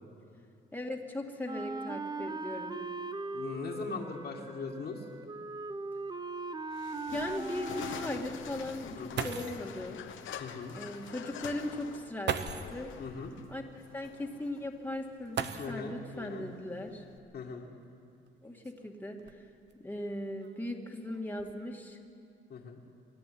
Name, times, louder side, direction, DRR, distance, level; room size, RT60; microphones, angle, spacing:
voice 1, 0.7-2.8 7.1-9.0 9.2-10.0 10.7-12.9 13.5-17.0 18.4-19.4 19.8-22.0, left 1 dB, 10° left, 1 dB, 2.4 m, -38 dB
Wind instrument woodwind instrument, 1.4-8.4, right 3 dB, 20° right, 0.7 m, -40 dB
voice 2, 3.3-5.1 9.0-9.3 10.4-10.8 13.0-13.3 15.6-16.5 17.3-17.7 22.5-22.8, left 4 dB, 55° left, -3 dB, 2.2 m, -40 dB
sound 1, 5.3-5.4 5.7-5.8 6.5-6.6 8.8-8.9 9.2-9.7 11.0-11.1 12.2-12.8 15.3-16.1 17.4-17.5 18.3-19.7 20.4-20.8 21.1-21.5, right 7 dB, 60° right, 1.0 m, -38 dB
sound 2, 6.7-17.2, left 8 dB, 80° left, 1.2 m, -46 dB
23.5 x 11.5 x 9.5 m, 2.4 s
cardioid pair, 90°, 20 cm